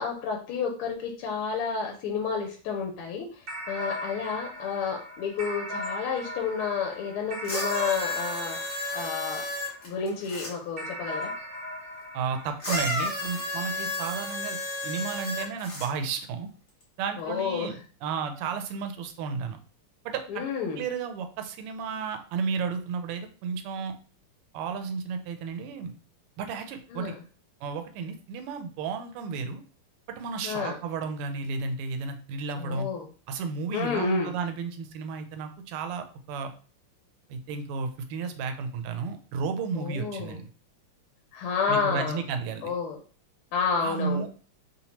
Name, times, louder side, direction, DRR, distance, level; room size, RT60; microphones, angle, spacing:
voice 1, 0.0-11.3 17.2-17.7 20.3-20.8 26.9-27.2 30.4-30.8 32.6-33.1 33.7-34.3 39.7-40.4 41.3-42.2 42.6-43.0 43.5-44.3, left 5 dB, 80° left, 1 dB, 1.5 m, -30 dB
sound 1, 3.5-10.1 10.8-13.5, left 1 dB, 55° right, 0.6 m, -38 dB
sound 2, 7.4-10.5 12.6-15.9 16.8-16.9, left 1 dB, 45° left, 1.2 m, -32 dB
voice 2, 12.1-14.6 14.8-16.5 17.0-19.6 20.0-20.4 20.7-23.9 24.5-25.9 26.4-27.1 27.6-29.6 30.1-32.9 33.3-36.5 37.3-40.5 41.7-42.7 43.8-44.3, right 5 dB, 90° right, 7 dB, 1.5 m, -33 dB
3.6 x 2.8 x 2.9 m, 0.38 s
omnidirectional pair, 2.4 m